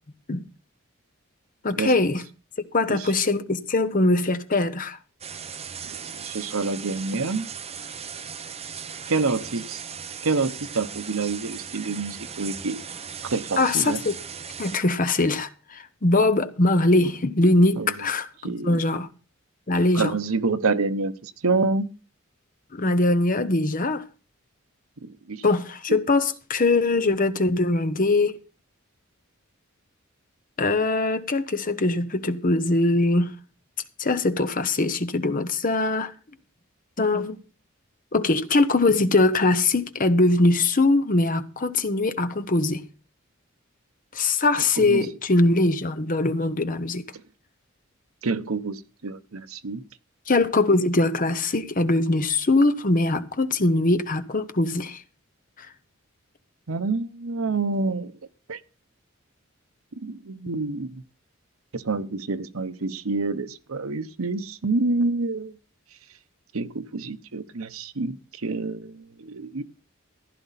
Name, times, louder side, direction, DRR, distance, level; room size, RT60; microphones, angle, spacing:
voice 1, 1.6-2.2 2.7-5.0 13.6-14.2 14.6-19.1 19.7-20.2 22.7-24.0 25.4-28.4 30.6-33.3 34.0-36.1 37.0-37.4 38.1-42.8 44.1-47.1 50.3-55.0 55.6-55.7, left 2 dB, 40° left, 1.0 m, -22 dB
sound 1, 5.2-14.8, right 7 dB, 30° right, 0.8 m, -38 dB
voice 2, 6.2-7.5 9.1-9.8 10.2-12.8 13.3-14.0 17.8-17.9 18.4-18.8 19.9-21.9 25.0-25.4 44.8-45.1 48.2-49.8 56.7-58.1 58.5-58.6 60.0-61.0 61.7-65.5 66.5-69.6, right 3 dB, 85° right, 0.9 m, -27 dB
15.0 x 11.0 x 4.1 m
head